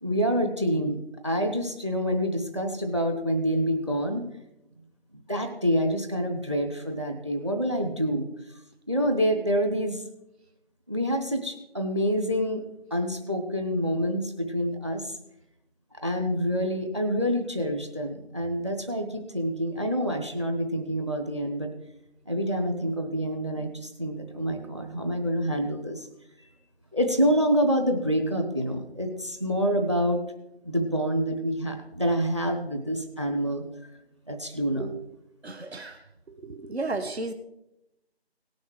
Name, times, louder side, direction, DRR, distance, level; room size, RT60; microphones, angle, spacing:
voice 1, 0.0-4.3 5.3-8.3 8.9-10.0 10.9-12.6 12.9-15.2 16.0-21.7 22.3-26.1 26.4-26.5 26.9-30.2 30.6-33.6 34.3-34.9, equal, 25° right, 6 dB, 0.9 m, -27 dB
voice 2, 35.4-36.0 36.4-37.3, right 3 dB, 75° right, 8 dB, 1.2 m, -33 dB
17.5 x 6.4 x 4.8 m, 0.85 s
figure-of-eight pair, 170°, 33 cm